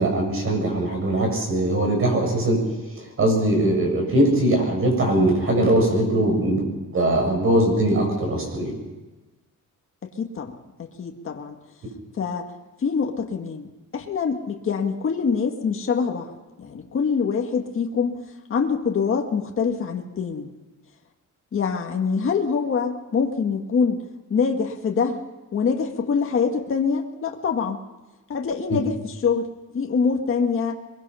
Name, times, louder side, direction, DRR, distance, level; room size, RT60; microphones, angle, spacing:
voice 1, 0.0-2.6 3.0-8.8 28.7-28.8, right 1 dB, 45° right, 2 dB, 7.9 m, -21 dB
voice 2, 10.0-11.6 12.2-12.5 12.8-18.2 18.5-20.5 21.5-24.0 24.3-25.2 25.5-27.8 28.3-29.5 29.7-30.8, left 5 dB, 40° left, 2 dB, 1.9 m, -25 dB
23.0 x 22.0 x 5.7 m, 1.2 s
cardioid pair, 150°, 31 cm